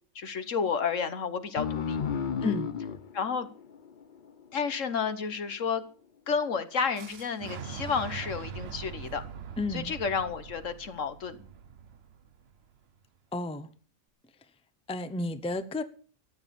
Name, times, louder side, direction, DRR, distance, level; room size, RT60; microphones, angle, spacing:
voice 1, 0.1-2.0 2.4-2.5 3.1-3.5 4.5-5.8 6.3-9.2 9.7-11.4, left 6 dB, 65° left, 1.6 m, -31 dB
sound 1, 1.6-4.7, left 7 dB, 45° left, 0.8 m, -34 dB
Fire / Explosion, 6.9-12.8, right 7 dB, 55° right, 0.9 m, -42 dB
voice 2, 9.6-9.9 13.3-13.7 14.4-14.5 14.9-15.8, left 2 dB, 5° left, 0.7 m, -32 dB
14.5 x 9.3 x 7.0 m
omnidirectional pair, 1.4 m